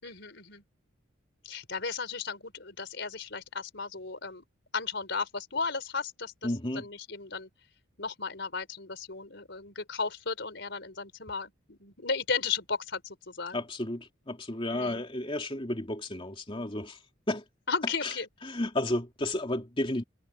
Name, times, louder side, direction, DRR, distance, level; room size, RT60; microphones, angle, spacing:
voice 1, 0.0-0.6 1.4-4.4 4.7-7.5 8.0-13.6 14.7-15.1 17.7-18.3, left 5 dB, 60° left, 5.0 m, -35 dB
voice 2, 6.4-6.9 13.5-17.0 17.3-17.4 18.0-18.1 18.4-20.0, left 1 dB, 25° left, 2.7 m, -32 dB
head